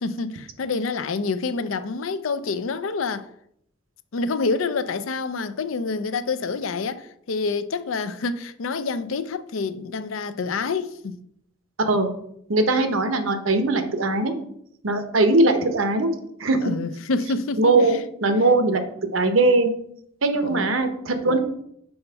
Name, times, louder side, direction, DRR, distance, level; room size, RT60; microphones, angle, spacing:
voice 1, 0.0-3.3 4.1-11.2 16.6-18.0 20.4-20.7, left 4 dB, 85° left, 0.5 m, -27 dB
voice 2, 12.5-14.3 14.8-16.1 16.4-16.6 17.6-18.8 19.1-19.7 20.2-21.4, right 2 dB, 85° right, 0.9 m, -20 dB
5.6 x 4.4 x 5.6 m
head